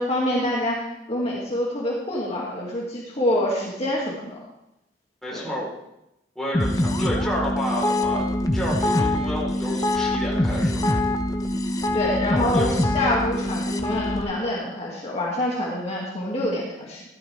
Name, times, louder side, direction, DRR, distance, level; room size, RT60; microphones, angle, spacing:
voice 1, 0.0-4.3 5.3-5.4 11.9-17.0, left 1 dB, 35° left, -4 dB, 2.3 m, -26 dB
voice 2, 5.2-5.7 6.4-8.3 8.5-10.8 12.3-12.8, equal, ahead, -6 dB, 4.0 m, -30 dB
sound 1, 6.5-14.2, left 1 dB, 20° left, 0.8 m, -24 dB
15.0 x 12.5 x 3.5 m, 0.86 s
head